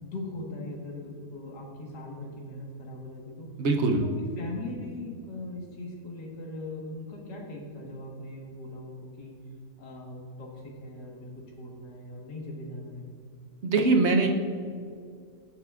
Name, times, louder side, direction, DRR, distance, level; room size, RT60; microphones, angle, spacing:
voice 1, 0.0-3.5 4.2-9.3 9.8-11.3 11.6-13.1, left 2 dB, 75° left, -1 dB, 2.1 m, -40 dB
voice 2, 3.6-4.1 13.6-14.3, right 3 dB, 55° right, 3 dB, 0.8 m, -22 dB
16.5 x 5.8 x 2.4 m, 2.3 s
omnidirectional pair, 1.8 m